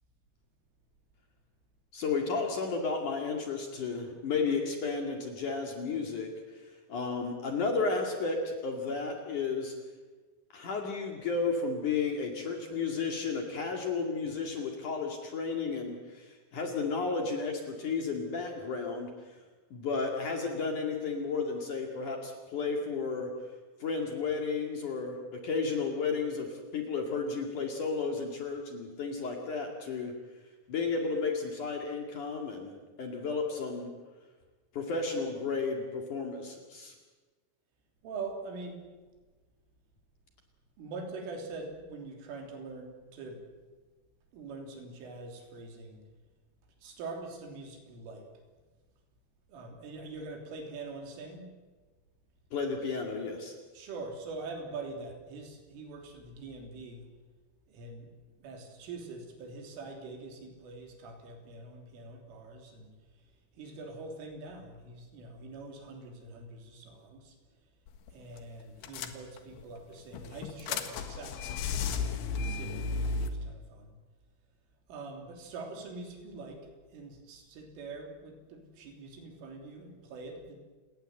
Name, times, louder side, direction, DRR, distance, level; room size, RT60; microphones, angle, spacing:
voice 1, 1.9-9.7 10.5-19.1 19.7-23.3 23.8-30.1 30.7-33.9 34.7-36.9 52.5-53.5, left 4 dB, 50° left, 3 dB, 3.1 m, -33 dB
voice 2, 38.0-38.8 40.8-43.4 44.3-46.0 46.8-48.3 49.5-51.5 53.7-57.0 57.7-58.1 58.4-62.9 63.6-67.4 68.1-73.9 74.9-80.6, right 3 dB, 75° right, 3 dB, 5.8 m, -44 dB
sound 1, 67.9-68.1 68.4-68.5 68.8-69.6 70.1-73.3, left 4 dB, 70° left, 3.5 m, -34 dB
30.0 x 18.5 x 7.9 m, 1.3 s
omnidirectional pair, 5.8 m